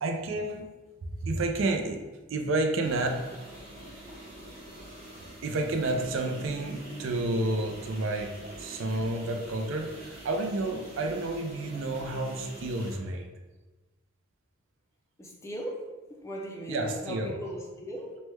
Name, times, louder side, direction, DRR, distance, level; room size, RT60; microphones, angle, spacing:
voice 1, 0.0-0.7 1.2-2.0 2.3-3.1 5.4-8.3 8.6-13.3 16.7-17.4, right 2 dB, 75° right, 4 dB, 0.4 m, -30 dB
sound 1, 2.8-13.0, right 1 dB, 30° right, 0.9 m, -45 dB
voice 2, 15.2-15.9 16.2-18.2, equal, 15° left, -1 dB, 0.4 m, -37 dB
3.1 x 2.2 x 3.1 m, 1.2 s
head